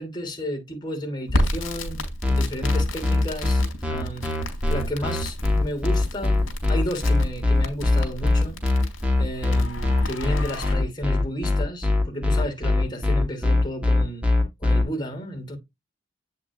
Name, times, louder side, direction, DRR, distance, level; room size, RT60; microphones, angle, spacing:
voice 1, 0.0-3.6 3.9-4.3 4.7-8.6 9.2-14.2 14.6-15.6, equal, 20° left, 2.7 m, -32 dB
Crackle, 1.3-10.7, left 1 dB, 75° left, 3.5 m, -31 dB
sound 1, 2.2-14.8, left 2 dB, 5° right, 1.8 m, -21 dB
8.4 x 6.4 x 2.4 m
head